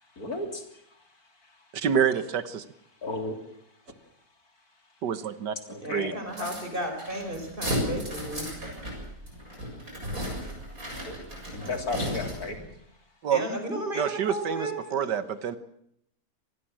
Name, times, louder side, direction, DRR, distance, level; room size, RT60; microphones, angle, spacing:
voice 1, 0.2-0.6 3.0-3.4 5.7-6.2 11.1-11.2 11.5-12.7, left 3 dB, 60° left, 6 dB, 3.9 m, -33 dB
voice 2, 1.7-2.6 5.0-5.6 5.9-6.1 13.2-13.4 13.9-15.6, right 8 dB, 85° right, 13 dB, 1.9 m, -27 dB
voice 3, 5.8-8.5 13.3-14.7, right 1 dB, 30° right, 5 dB, 5.3 m, -33 dB
sound 1, 6.3-12.6, equal, 55° right, 7.9 m, -35 dB
26.0 x 19.5 x 7.6 m, 0.73 s
omnidirectional pair, 1.8 m